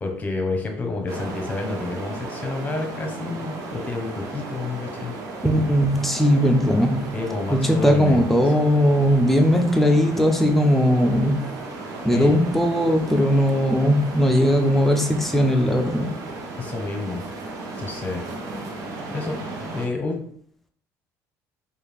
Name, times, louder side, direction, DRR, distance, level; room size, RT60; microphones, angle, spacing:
voice 1, 0.0-5.1 7.1-8.5 12.1-12.4 16.6-17.2 17.8-18.2 19.1-20.2, left 3 dB, 20° left, 3 dB, 0.9 m, -29 dB
sound 1, 1.1-19.9, right 2 dB, 55° right, 0.9 m, -35 dB
voice 2, 5.4-7.2 7.5-11.4 12.0-16.1, equal, 5° left, 3 dB, 0.6 m, -19 dB
4.5 x 2.4 x 3.4 m, 0.62 s
cardioid pair, 115°, 7 cm